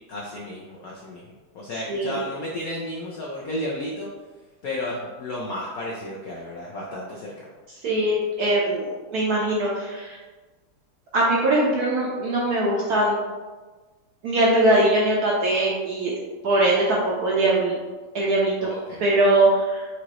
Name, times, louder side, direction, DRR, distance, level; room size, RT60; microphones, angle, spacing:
voice 1, 0.1-4.1 4.6-7.5 18.6-19.0, left 1 dB, 80° left, -4 dB, 0.8 m, -33 dB
voice 2, 1.9-2.2 7.8-10.2 11.1-13.2 14.2-16.1 16.4-17.8 18.1-18.7 19.0-19.9, right 1 dB, 70° right, -4 dB, 0.9 m, -21 dB
4.9 x 3.0 x 2.9 m, 1.3 s
omnidirectional pair, 2.3 m